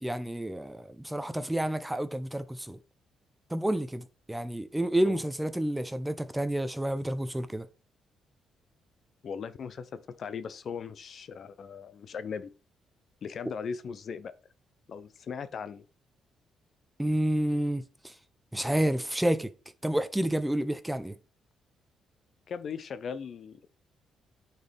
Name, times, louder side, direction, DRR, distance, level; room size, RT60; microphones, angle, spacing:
voice 1, 0.0-2.8 3.5-7.7 17.0-18.1 18.5-19.5 19.8-21.1, right 1 dB, 5° right, 0.6 m, -29 dB
voice 2, 9.2-12.5 13.2-14.3 14.9-15.9 22.5-23.7, left 6 dB, 55° left, 0.6 m, -38 dB
9.5 x 4.4 x 3.4 m
cardioid pair, 90°, 0 cm